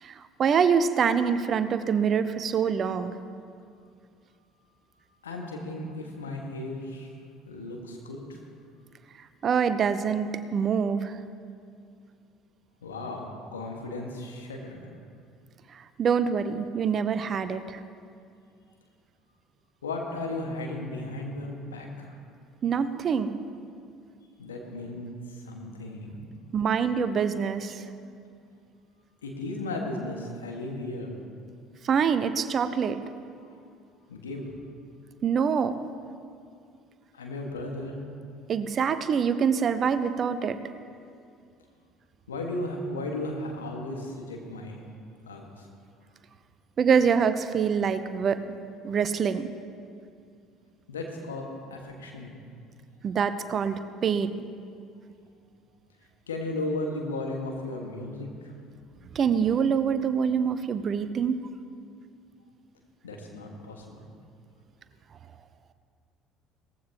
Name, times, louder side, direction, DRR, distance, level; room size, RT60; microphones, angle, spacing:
voice 1, 0.0-3.1 9.4-11.2 15.7-17.8 22.6-23.4 26.5-27.8 31.8-33.0 35.2-35.8 38.5-40.6 46.8-48.4 48.8-49.5 53.0-54.4 59.1-61.4, right 6 dB, 45° right, 12 dB, 0.7 m, -25 dB
voice 2, 5.2-7.1 7.5-8.4 12.8-14.9 19.8-22.1 24.4-26.3 29.2-31.1 33.5-33.6 34.1-34.4 37.1-38.0 42.3-44.8 45.3-45.7 50.9-51.4 51.7-52.3 56.3-58.5 63.0-63.9, left 2 dB, 80° left, 1 dB, 1.7 m, -35 dB
18.5 x 15.0 x 3.0 m, 2.4 s
figure-of-eight pair, 60°, 0 cm